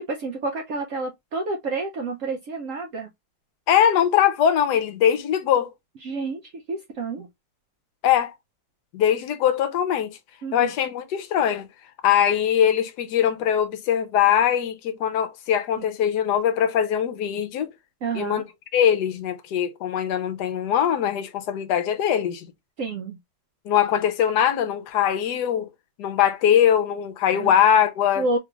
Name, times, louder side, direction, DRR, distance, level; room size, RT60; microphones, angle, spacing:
voice 1, 0.0-3.1 6.0-6.4 6.7-7.3 10.4-10.7 18.0-18.4 22.8-23.2 27.3-27.5 28.2-28.4, right 3 dB, 70° right, 0.8 m, -29 dB
voice 2, 3.7-5.7 8.0-8.3 8.9-10.2 10.5-11.7 12.0-17.7 18.1-18.4 18.7-22.5 23.7-25.7 26.0-28.2, left 9 dB, 70° left, 1.2 m, -21 dB
3.4 x 2.3 x 2.9 m
omnidirectional pair, 1.9 m